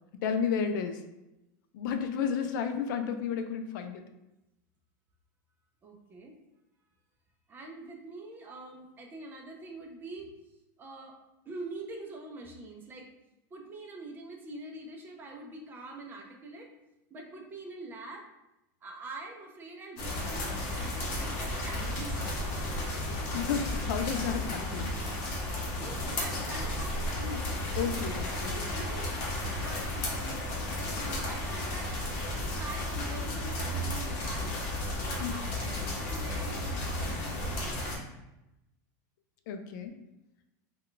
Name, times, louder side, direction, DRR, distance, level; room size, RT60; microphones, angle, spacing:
voice 1, 0.2-1.0 1.7-4.0 23.3-24.9 27.8-28.6 35.2-35.3 39.5-39.9, left 7 dB, 75° left, 6 dB, 0.4 m, -32 dB
voice 2, 5.8-6.4 7.5-10.3 10.8-11.2 11.5-13.1 13.5-16.7 17.1-18.3 18.8-22.6 23.3-23.4 25.8-27.5 28.1-34.6 35.0-37.7, right 2 dB, 20° right, 2 dB, 0.4 m, -44 dB
sound 1, 20.0-38.0, left 1 dB, 55° left, 0.8 m, -33 dB
2.2 x 2.2 x 3.7 m, 0.93 s
supercardioid pair, 155°, 10 cm